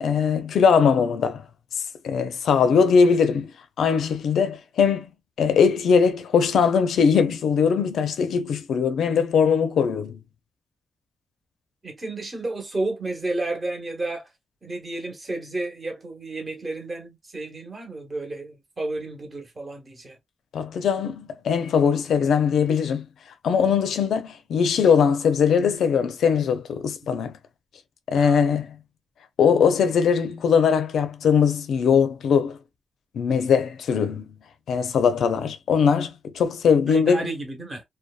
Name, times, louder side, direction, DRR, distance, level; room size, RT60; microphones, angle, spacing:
voice 1, 0.0-1.4 2.0-3.5 3.8-5.1 5.4-10.2 20.5-23.1 23.4-27.4 28.1-28.8 29.4-32.6 33.1-34.3 34.7-37.3, left 6 dB, 90° left, 0.5 m, -21 dB
voice 2, 11.8-14.3 14.6-20.2 27.0-27.3 28.1-28.5 36.9-37.8, right 2 dB, 30° right, 1.0 m, -32 dB
2.7 x 2.2 x 2.2 m
wide cardioid pair, 130°, 0 cm